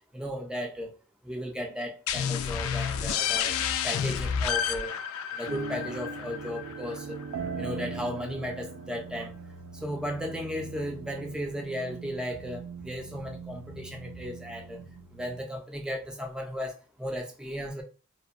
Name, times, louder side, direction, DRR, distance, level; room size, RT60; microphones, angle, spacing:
voice 1, 0.1-0.9 1.2-3.6 3.8-5.0 5.3-7.2 7.6-9.3 9.8-14.8 15.1-17.8, equal, 5° right, 0.4 m, -35 dB
sound 1, 2.1-7.5, left 8 dB, 80° left, 0.3 m, -30 dB
sound 2, 5.5-15.4, right 4 dB, 75° right, 0.3 m, -41 dB
2.7 x 2.1 x 2.4 m
head